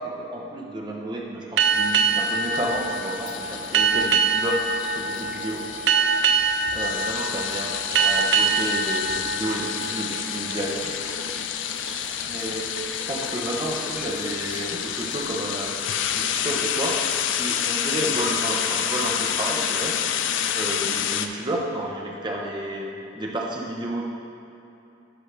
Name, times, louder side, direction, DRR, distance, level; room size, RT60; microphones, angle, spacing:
voice 1, 0.0-4.6 4.9-5.7 6.7-10.9 12.3-12.7 13.0-15.7 16.1-17.0 17.3-20.0 20.5-24.0, right 1 dB, 25° right, -1 dB, 0.9 m, -31 dB
sound 1, 1.6-21.3, left 9 dB, 85° left, 0.4 m, -29 dB
sound 2, 1.6-10.7, right 5 dB, 70° right, 0.4 m, -24 dB
sound 3, 2.4-21.0, equal, 5° right, 1.3 m, -45 dB
11.0 x 5.1 x 3.4 m, 2.8 s
head